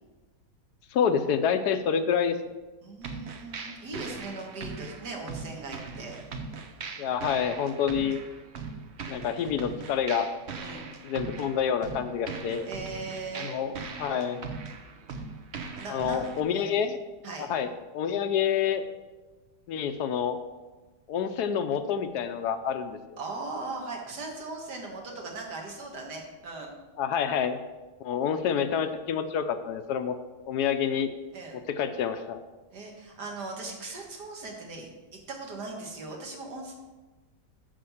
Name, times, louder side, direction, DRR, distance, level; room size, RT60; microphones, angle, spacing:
voice 1, 0.9-2.4 7.0-8.2 9.1-10.3 11.0-12.7 13.4-14.4 15.9-17.0 17.4-18.8 19.7-20.4 21.1-23.2 27.0-27.6 28.0-30.1 30.5-31.1 31.7-32.4, left 7 dB, 75° left, 9 dB, 1.1 m, -28 dB
voice 2, 2.8-6.2 10.5-10.9 12.7-13.5 15.8-16.8 17.2-17.5 23.2-26.8 31.3-31.6 32.7-34.9 35.3-36.7, right 3 dB, 70° right, 1 dB, 2.2 m, -39 dB
sound 1, 3.0-16.4, right 4 dB, 50° right, 0.9 m, -40 dB
7.6 x 5.9 x 7.1 m, 1.2 s
omnidirectional pair, 1.9 m